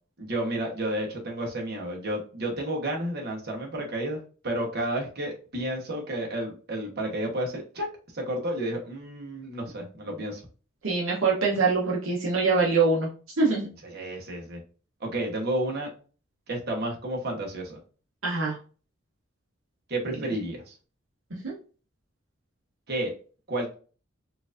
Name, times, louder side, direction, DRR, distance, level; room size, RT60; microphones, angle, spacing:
voice 1, 0.2-7.9 8.1-10.4 13.9-14.6 15.0-15.9 16.5-17.8 19.9-20.7 22.9-23.1 23.5-23.7, right 1 dB, 50° right, 0 dB, 1.0 m, -31 dB
voice 2, 10.8-13.1 13.4-13.7 18.2-18.6 21.4-21.5, right 4 dB, 70° right, -4 dB, 0.9 m, -24 dB
4.5 x 2.5 x 2.4 m, 0.38 s
head